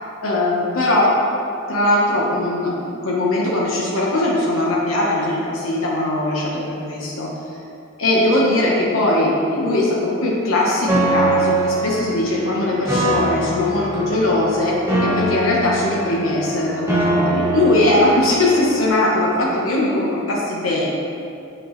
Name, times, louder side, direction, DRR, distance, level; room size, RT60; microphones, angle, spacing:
voice 1, 0.2-1.1 1.7-7.3 8.0-20.9, left 1 dB, 80° left, -5 dB, 1.1 m, -20 dB
Piano, 10.9-18.9, right 2 dB, 15° right, 1.2 m, -23 dB
7.8 x 6.1 x 3.2 m, 2.6 s
head